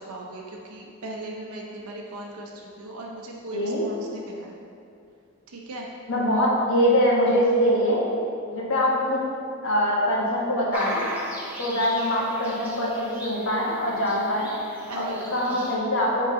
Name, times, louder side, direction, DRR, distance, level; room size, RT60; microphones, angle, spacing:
voice 1, 0.0-4.5 5.5-5.9 14.8-15.2 15.5-15.7, right 2 dB, 85° right, -2 dB, 0.7 m, -38 dB
voice 2, 3.5-3.9 6.1-8.0 8.5-9.2 9.6-11.2 11.6-14.5 14.9-15.0 15.3-16.3, equal, 60° left, -5 dB, 1.3 m, -23 dB
sound 1, 10.7-15.8, equal, 5° right, 0.7 m, -38 dB
7.4 x 3.9 x 3.7 m, 2.6 s
head